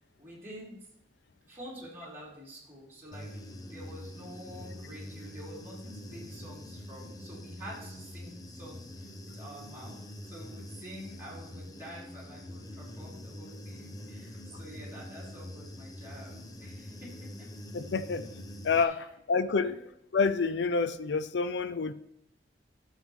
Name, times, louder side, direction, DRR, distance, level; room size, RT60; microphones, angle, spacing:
voice 1, 0.2-0.9 1.5-3.3 3.7-17.1 18.7-19.0 19.5-19.8, equal, 10° right, -8 dB, 4.4 m, -48 dB
Human voice / Buzz, 3.1-18.8, left 1 dB, 20° left, 0.8 m, -45 dB
voice 2, 17.7-18.3 18.6-19.8 20.1-21.9, left 4 dB, 75° left, 12 dB, 0.5 m, -28 dB
12.0 x 7.5 x 3.7 m, 0.82 s
head